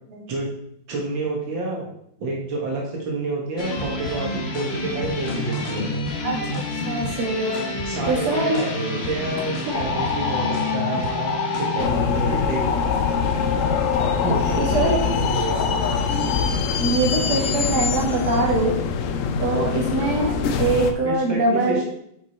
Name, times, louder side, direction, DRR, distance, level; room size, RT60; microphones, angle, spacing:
voice 1, 0.9-1.9 2.2-5.9 7.9-12.7 14.2-15.8 21.1-21.8, right 2 dB, 75° right, -2 dB, 2.1 m, -28 dB
sound 1, 3.6-11.9, left 2 dB, 45° left, 1.0 m, -29 dB
voice 2, 6.2-7.6 8.1-8.7 14.6-15.0 16.8-18.7 19.4-21.8, right 3 dB, 55° right, -1 dB, 2.2 m, -23 dB
sound 2, 9.7-16.5, left 5 dB, 65° left, 1.1 m, -27 dB
sound 3, 11.8-20.9, left 6 dB, 80° left, 0.7 m, -24 dB
8.3 x 4.8 x 4.2 m, 0.73 s
omnidirectional pair, 2.1 m